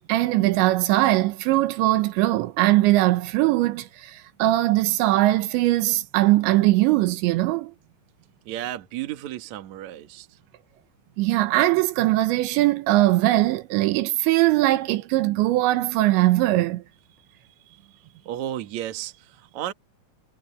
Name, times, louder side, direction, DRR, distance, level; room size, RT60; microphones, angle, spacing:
voice 1, 0.1-7.7 11.2-16.8, right 16 dB, 80° right, 3.2 m, -21 dB
voice 2, 8.5-10.3 17.7-17.8 18.3-19.7, right 12 dB, 60° right, 2.1 m, -33 dB
omnidirectional pair, 5.3 m